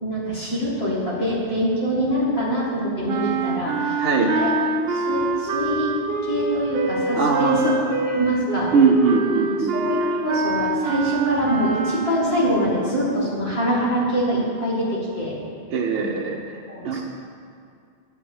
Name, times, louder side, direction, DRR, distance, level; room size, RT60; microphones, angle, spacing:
voice 1, 0.0-4.5 4.9-6.0 6.2-8.7 9.6-15.3 16.0-16.1 16.7-17.0, equal, 60° left, -7 dB, 2.4 m, -24 dB
sound 1, 3.1-12.6, right 3 dB, 60° right, 0.9 m, -25 dB
voice 2, 7.2-7.9 8.7-9.8 15.7-17.0, right 5 dB, 85° right, -1 dB, 1.0 m, -21 dB
9.7 x 4.8 x 7.8 m, 2.4 s
omnidirectional pair, 1.2 m